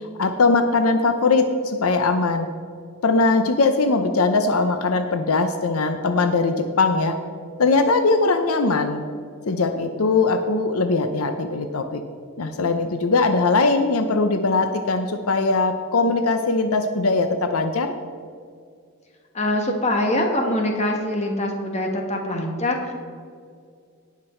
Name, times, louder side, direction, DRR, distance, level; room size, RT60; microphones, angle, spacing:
voice 1, 0.0-2.5 3.0-7.2 7.6-9.1 9.5-12.0 12.4-17.9, left 3 dB, 80° left, 8 dB, 0.7 m, -20 dB
voice 2, 19.3-22.9, left 1 dB, 30° left, 2 dB, 1.4 m, -23 dB
17.5 x 6.0 x 4.4 m, 2.2 s
head